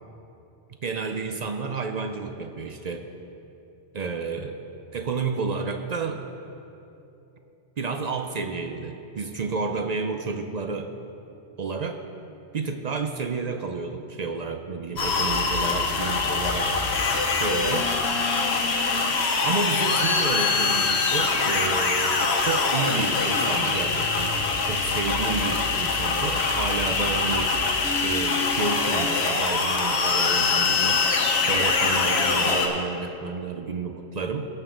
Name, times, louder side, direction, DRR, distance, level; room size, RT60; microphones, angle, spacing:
voice 1, 0.8-3.0 3.9-4.6 4.9-6.3 7.8-10.9 11.6-12.0 12.5-16.7 17.3-17.9 19.4-27.5 28.0-31.0 31.5-34.5, right 4 dB, 50° right, 5 dB, 0.5 m, -30 dB
sound 1, 15.0-32.7, left 4 dB, 65° left, 1.2 m, -23 dB
17.0 x 6.7 x 3.7 m, 2.9 s
omnidirectional pair, 1.2 m